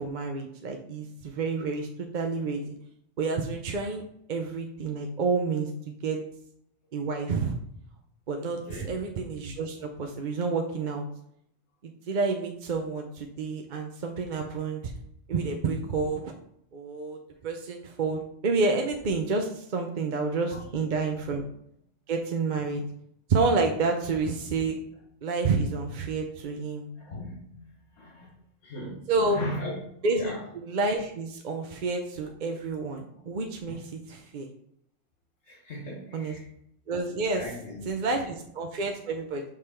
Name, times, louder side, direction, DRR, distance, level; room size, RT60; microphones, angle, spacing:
voice 1, 0.0-2.7 3.2-4.0 4.3-6.2 6.9-7.6 8.3-11.0 12.1-14.8 15.3-16.3 16.7-17.2 17.4-21.5 22.1-22.8 23.3-24.7 25.2-26.9 29.1-29.4 30.0-33.8 34.3-34.5 36.1-36.3 36.9-37.4 37.9-39.4, right 4 dB, 50° right, 3 dB, 0.6 m, -29 dB
voice 2, 8.6-9.0 20.5-20.6 22.8-22.9 27.0-27.7 27.9-28.3 28.6-30.4 35.4-36.5 37.3-38.4, left 1 dB, 65° left, -3 dB, 1.8 m, -38 dB
6.5 x 3.7 x 4.3 m, 0.71 s
omnidirectional pair, 1.3 m